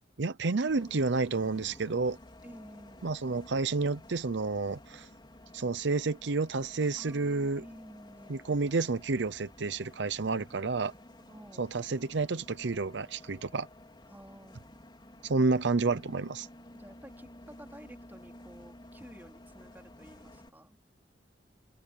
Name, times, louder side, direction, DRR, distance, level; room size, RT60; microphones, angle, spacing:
voice 1, 0.2-2.2 3.0-5.1 5.5-7.6 8.3-10.9 11.6-13.7 15.2-16.5, right 3 dB, 70° right, 0.7 m, -30 dB
Bus, 0.7-20.5, left 1 dB, 25° left, 4.7 m, -53 dB
voice 2, 2.4-3.1 7.0-8.5 11.1-11.7 14.1-14.6 15.3-15.4 16.7-20.8, equal, 10° right, 3.5 m, -52 dB
head